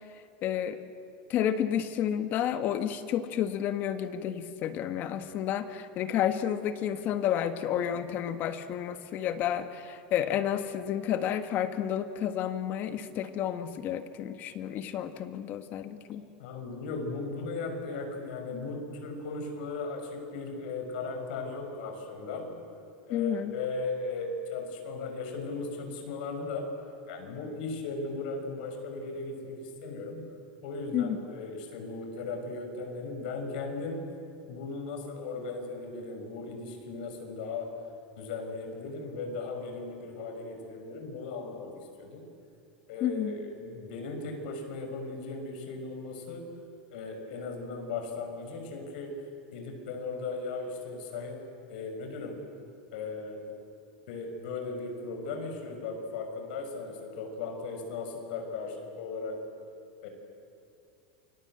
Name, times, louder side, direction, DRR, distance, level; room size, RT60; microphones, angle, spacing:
voice 1, 0.4-0.8 1.3-16.2 23.1-23.5 30.9-31.2 43.0-43.4, left 10 dB, 35° left, 9 dB, 1.6 m, -31 dB
voice 2, 16.4-22.5 23.1-26.7 27.1-30.3 30.6-34.1 34.5-37.8 38.2-42.3 42.9-46.5 46.9-52.4 52.9-53.5 54.1-59.4 60.0-60.1, left 3 dB, 65° left, 4 dB, 6.1 m, -37 dB
28.5 x 24.5 x 8.0 m, 2.5 s
supercardioid pair, 160°, 5 cm